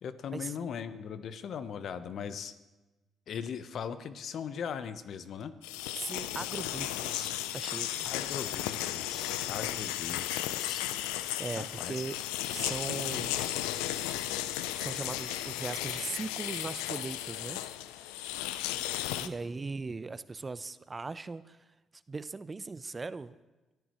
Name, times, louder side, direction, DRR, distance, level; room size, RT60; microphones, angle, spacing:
voice 1, 0.0-2.5 3.3-5.5 8.0-10.8 11.6-12.0, left 7 dB, 65° left, 12 dB, 0.9 m, -39 dB
sound 1, 5.6-19.3, left 13 dB, 85° left, 0.5 m, -35 dB
voice 2, 5.9-8.1 11.4-12.2 12.5-13.4 14.7-17.6 19.2-21.6 22.1-23.4, right 3 dB, 30° right, 15 dB, 0.7 m, -39 dB
24.0 x 14.0 x 3.1 m, 1.1 s
hypercardioid pair, 55°, 0 cm